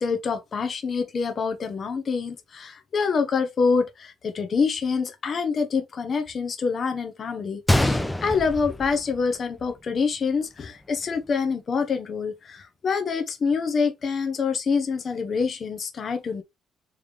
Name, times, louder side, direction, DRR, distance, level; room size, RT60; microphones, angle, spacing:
voice 1, 0.0-16.4, left 5 dB, 50° left, 0.9 m, -26 dB
Gunshot gunfire, 7.7-9.7 10.0-10.1 10.8-11.0, left 1 dB, 10° left, 0.5 m, -25 dB
3.5 x 3.2 x 3.3 m
cardioid pair, 90°, 0 cm